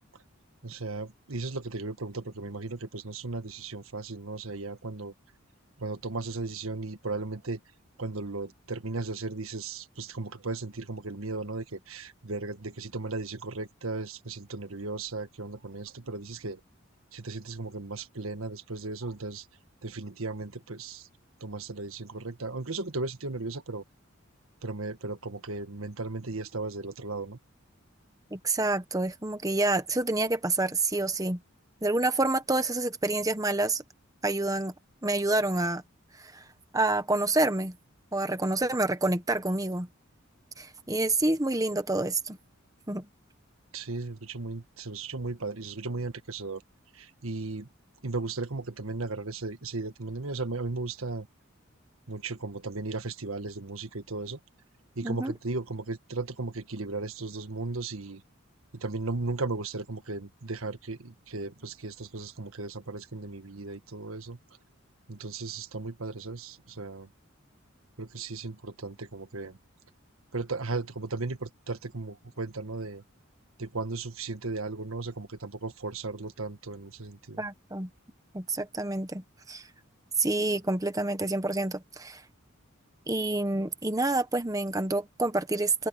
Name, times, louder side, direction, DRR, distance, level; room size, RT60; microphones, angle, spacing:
voice 1, 0.6-5.1 5.8-7.6 8.0-16.6 17.1-19.5 19.8-21.1 21.4-23.8 24.6-27.4 43.7-46.6 46.9-47.7 48.0-51.3 52.1-54.4 54.9-58.2 58.7-64.4 65.1-67.1 68.0-69.6 70.3-73.0 73.6-77.4, right 3 dB, 85° right, 1.6 m, -36 dB
voice 2, 28.3-31.4 31.8-33.8 34.2-34.7 35.0-35.8 36.2-36.4 36.7-37.7 38.1-39.9 40.6-42.4 42.9-43.1 55.0-55.3 77.4-77.9 78.3-79.6 80.2-82.2 83.1-85.9, right 2 dB, 15° right, 1.2 m, -28 dB
head